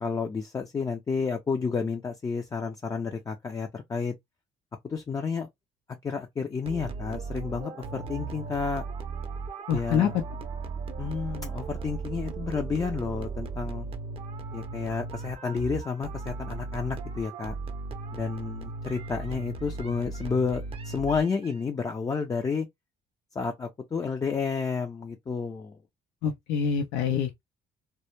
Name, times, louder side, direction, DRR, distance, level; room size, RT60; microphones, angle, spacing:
voice 1, 0.0-4.1 4.8-5.5 6.0-8.8 9.7-10.1 11.0-13.9 14.5-17.5 18.1-22.7 23.4-25.8, left 5 dB, 20° left, 0.3 m, -31 dB
sound 1, 6.7-21.6, right 4 dB, 35° right, 0.5 m, -37 dB
voice 2, 9.7-10.2 26.2-27.4, left 7 dB, 90° left, 0.5 m, -26 dB
2.1 x 2.0 x 2.9 m
cardioid pair, 110°, 17 cm